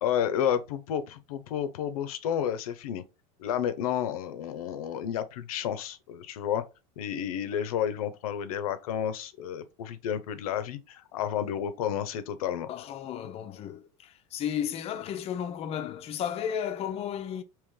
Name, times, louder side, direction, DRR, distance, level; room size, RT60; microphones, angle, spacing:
voice 1, 0.0-3.0 3.4-6.6 7.0-12.7, left 9 dB, 90° left, 0.6 m, -31 dB
voice 2, 12.7-17.4, left 9 dB, 35° left, 0.5 m, -34 dB
3.2 x 2.9 x 3.6 m
supercardioid pair, 120°, 18 cm